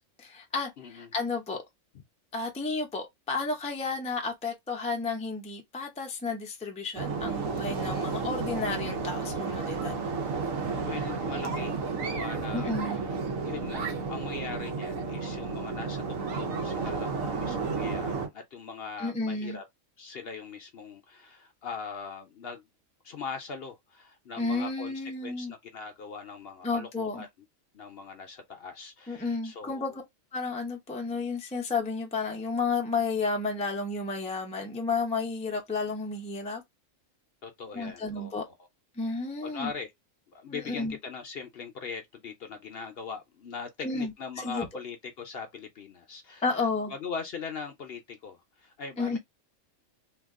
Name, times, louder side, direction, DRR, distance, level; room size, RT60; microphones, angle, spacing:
voice 1, 0.2-1.6 2.3-10.0 12.5-13.0 19.0-19.6 24.4-25.5 26.6-27.2 29.1-29.9 30.3-36.6 37.7-38.4 39.0-39.7 40.5-41.0 43.8-44.7 46.4-46.9 49.0-49.2, left 4 dB, 10° left, 0.5 m, -32 dB
voice 2, 0.8-1.1 10.9-13.1 13.4-16.0 16.4-19.6 20.0-22.6 23.0-27.3 27.7-30.0 37.4-38.5 39.4-39.9 40.3-49.2, left 5 dB, 55° left, 0.8 m, -41 dB
sound 1, 6.9-18.3, right 4 dB, 80° right, 1.2 m, -32 dB
2.8 x 2.4 x 3.5 m
omnidirectional pair, 1.4 m